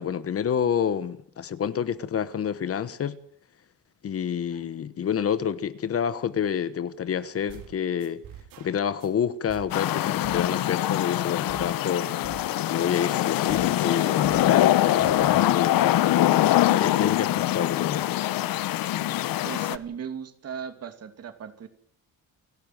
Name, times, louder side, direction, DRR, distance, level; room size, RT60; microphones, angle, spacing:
voice 1, 0.0-3.2 4.0-8.2 8.6-12.1 12.7-18.0, left 8 dB, 45° left, 1.1 m, -28 dB
sound 1, 7.5-7.7 8.0-9.1 9.5-9.7 10.0-11.7 12.0-13.1 13.5-13.7 14.0-15.5, right 9 dB, 85° right, 4.1 m, -46 dB
sound 2, 9.7-19.8, left 14 dB, 80° left, 1.1 m, -23 dB
voice 2, 19.4-21.7, right 7 dB, 45° right, 2.7 m, -37 dB
28.5 x 12.0 x 9.2 m
cardioid pair, 150°, 34 cm